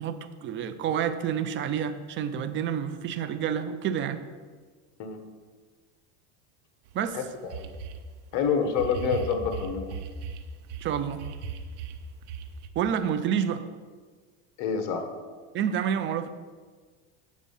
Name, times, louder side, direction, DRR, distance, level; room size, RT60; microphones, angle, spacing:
voice 1, 0.0-4.3 6.9-7.2 10.8-11.2 12.8-13.6 15.5-16.3, right 8 dB, 35° right, 10 dB, 0.6 m, -28 dB
sound 1, 6.9-7.0 7.5-8.1 8.7-10.9 11.2-12.7, right 6 dB, 80° right, 0.9 m, -37 dB
voice 2, 7.1-7.7 8.3-9.9 14.6-15.1, left 6 dB, 55° left, 7 dB, 1.2 m, -27 dB
8.5 x 6.3 x 5.5 m, 1.5 s
supercardioid pair, 135°, 34 cm